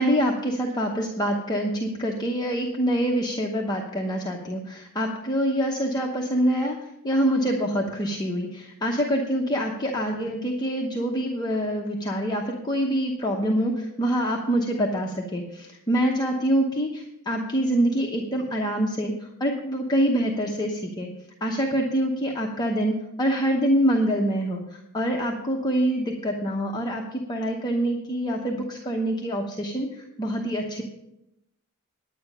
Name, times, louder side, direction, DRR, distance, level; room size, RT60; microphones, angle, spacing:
voice 1, 0.0-21.1 21.4-30.8, equal, 20° left, -1 dB, 1.0 m, -25 dB
10.0 x 9.4 x 5.5 m, 0.85 s
head